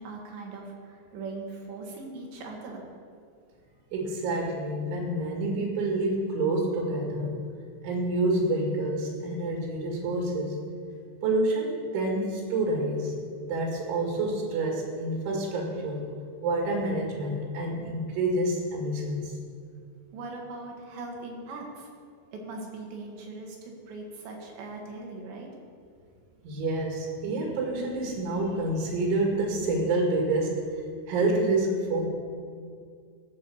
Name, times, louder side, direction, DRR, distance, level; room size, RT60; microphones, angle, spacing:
voice 1, 0.0-2.8 20.1-21.9 22.3-25.5, right 3 dB, 70° right, 0 dB, 3.8 m, -40 dB
voice 2, 3.9-7.4 7.8-10.6 11.2-16.1 16.4-19.3 26.4-30.6 31.1-32.1, right 2 dB, 90° right, 0 dB, 4.4 m, -28 dB
16.0 x 6.5 x 7.0 m, 2.3 s
omnidirectional pair, 5.3 m